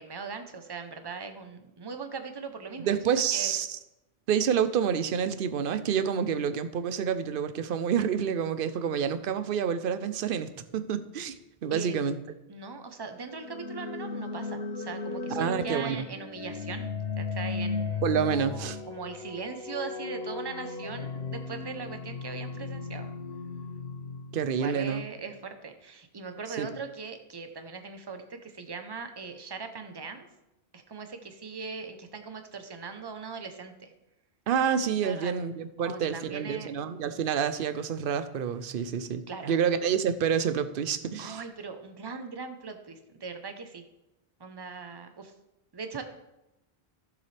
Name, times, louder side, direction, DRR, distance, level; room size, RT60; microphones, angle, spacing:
voice 1, 0.0-3.0 3.3-3.6 11.7-11.9 12.5-18.0 18.3-23.1 24.6-30.3 30.7-33.9 35.0-35.3 35.8-36.7 39.3-39.6 41.2-43.8 44.4-45.3 45.7-46.0, right 5 dB, 25° right, 7 dB, 0.8 m, -40 dB
voice 2, 2.9-3.8 4.3-11.4 11.6-12.2 15.3-16.1 18.0-18.8 24.3-25.0 26.6-26.7 34.5-41.4, right 7 dB, 60° right, 12 dB, 0.8 m, -28 dB
sound 1, 13.2-25.1, left 4 dB, 65° left, 0.9 m, -36 dB
15.0 x 6.9 x 3.4 m, 0.92 s
omnidirectional pair, 1.1 m